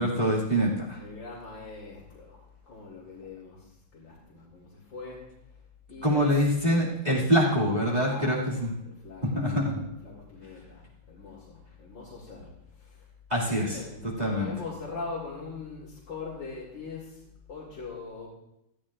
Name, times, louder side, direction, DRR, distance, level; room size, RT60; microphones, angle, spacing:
voice 1, 0.0-1.0 6.0-8.7 9.2-9.8 13.3-13.8 14.2-14.5, equal, 20° right, -5 dB, 2.3 m, -25 dB
voice 2, 1.0-2.4 2.7-5.2 5.9-7.1 7.8-13.1 13.4-18.3, left 4 dB, 60° left, -6 dB, 3.2 m, -42 dB
19.5 x 14.0 x 2.5 m, 0.82 s
omnidirectional pair, 2.2 m